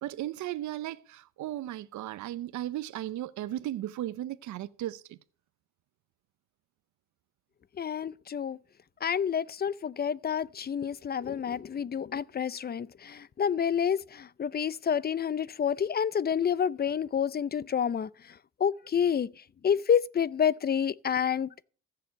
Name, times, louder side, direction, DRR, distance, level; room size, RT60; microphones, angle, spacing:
voice 1, 0.0-5.2, right 13 dB, 70° right, 0.7 m, -36 dB
voice 2, 7.8-8.6 9.0-21.6, left 8 dB, 30° left, 0.5 m, -29 dB
15.0 x 6.9 x 6.3 m
cardioid pair, 90°, 30 cm